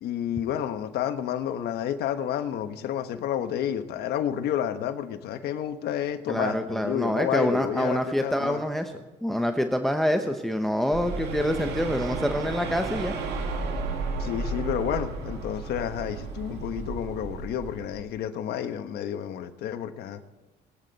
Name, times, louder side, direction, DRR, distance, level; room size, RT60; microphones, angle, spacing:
voice 1, 0.0-8.6 14.2-20.2, left 10 dB, 75° left, 8 dB, 1.2 m, -30 dB
voice 2, 6.3-8.9 9.2-13.2, equal, ahead, 6 dB, 0.9 m, -26 dB
sound 1, 10.9-18.0, right 3 dB, 80° right, 2.0 m, -33 dB
22.0 x 8.7 x 4.1 m, 1.1 s
cardioid pair, 110°, 17 cm